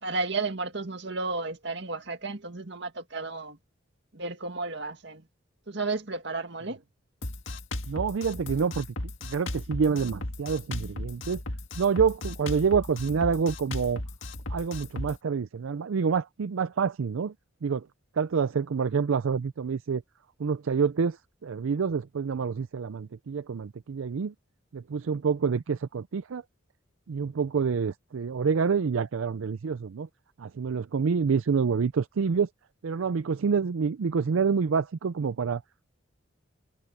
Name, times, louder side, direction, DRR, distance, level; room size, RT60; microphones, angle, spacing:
voice 1, 0.0-3.6 4.1-5.2 5.7-6.8, right 3 dB, 60° right, 2.1 m, -33 dB
Drum kit, 7.2-15.2, left 1 dB, 75° left, 1.8 m, -36 dB
voice 2, 7.9-8.9 9.2-11.4 11.8-14.0 14.5-17.3 17.6-17.9 18.2-20.0 20.4-24.3 24.7-26.4 27.1-30.1 30.4-32.5 32.8-35.6, right 5 dB, 85° right, 0.5 m, -27 dB
head